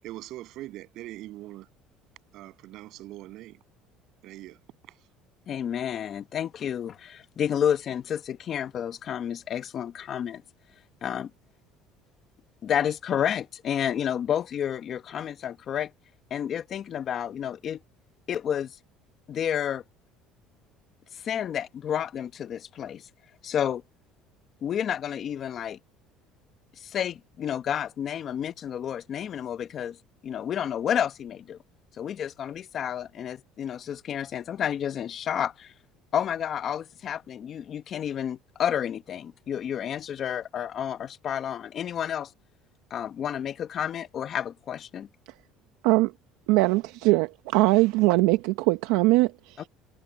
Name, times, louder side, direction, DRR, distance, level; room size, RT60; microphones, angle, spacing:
voice 1, 0.0-1.7 2.3-3.6 4.2-4.6 4.9-5.0, right 16 dB, 65° right, 7.4 m, -42 dB
voice 2, 5.5-10.4 11.0-11.3 12.6-15.9 16.3-17.8 18.3-18.7 19.3-19.8 21.1-23.0 23.4-23.8 24.6-25.8 26.8-30.0 30.2-31.6 32.0-35.7 36.1-42.3 42.9-45.1, left 9 dB, 45° left, 1.0 m, -30 dB
voice 3, 46.5-49.6, right 20 dB, 85° right, 0.9 m, -21 dB
supercardioid pair, 110°, 0 cm